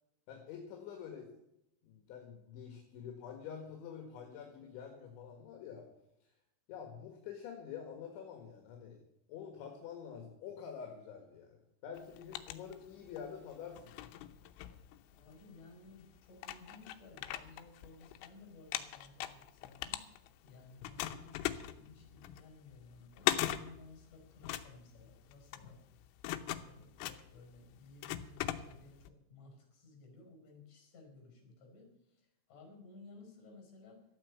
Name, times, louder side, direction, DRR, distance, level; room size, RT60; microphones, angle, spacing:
voice 1, 0.3-1.3 1.8-5.8 6.7-9.0 9.3-14.1, left 7 dB, 70° left, 3 dB, 3.9 m, -47 dB
sound 1, 12.0-13.3 13.7-15.4 16.0-16.1 16.4-18.3 18.6-20.5 20.8-29.1, left 13 dB, 90° left, 3.5 m, -39 dB
voice 2, 15.1-20.0 20.4-25.8 26.3-34.0, left 3 dB, 40° left, 2 dB, 6.1 m, -57 dB
13.0 x 8.9 x 8.3 m, 0.82 s
omnidirectional pair, 5.8 m